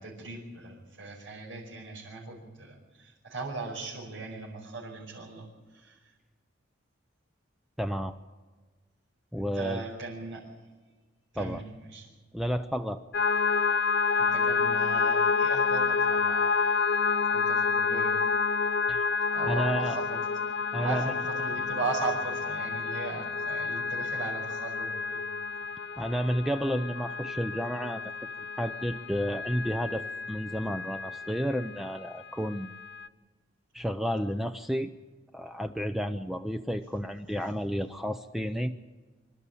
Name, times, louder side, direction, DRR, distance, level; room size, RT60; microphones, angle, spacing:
voice 1, 0.0-5.5 5.7-6.0 9.4-10.4 11.3-11.6 11.9-12.1 14.2-16.6 17.3-18.2 19.3-20.2 20.8-25.3, right 3 dB, 90° right, -4 dB, 5.3 m, -37 dB
voice 2, 7.8-8.2 9.3-9.8 11.4-11.6 12.3-13.0 18.9-19.0 19.4-20.0 20.7-21.1 26.0-28.1 28.6-32.7 33.7-34.9 35.3-38.7, equal, ahead, 7 dB, 0.6 m, -31 dB
sound 1, 13.1-31.8 32.3-33.1, left 5 dB, 60° left, 0.7 m, -29 dB
25.5 x 12.5 x 8.4 m, 1.4 s
head